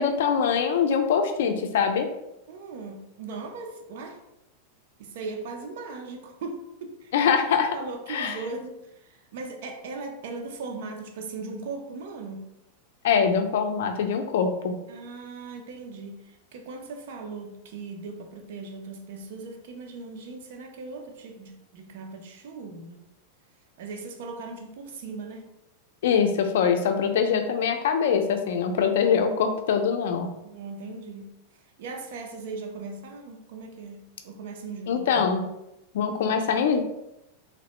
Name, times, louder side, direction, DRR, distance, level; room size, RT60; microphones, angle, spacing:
voice 1, 0.0-2.1 7.1-7.8 8.1-8.4 13.0-14.8 26.0-30.3 34.9-35.4 35.9-36.8, left 6 dB, 75° left, 6 dB, 0.4 m, -23 dB
voice 2, 2.5-4.2 5.0-7.1 7.7-12.4 14.9-23.1 23.8-25.5 30.4-31.3 31.8-35.2, right 3 dB, 65° right, 4 dB, 0.4 m, -38 dB
3.0 x 2.0 x 2.9 m, 0.88 s
supercardioid pair, 155°, 0 cm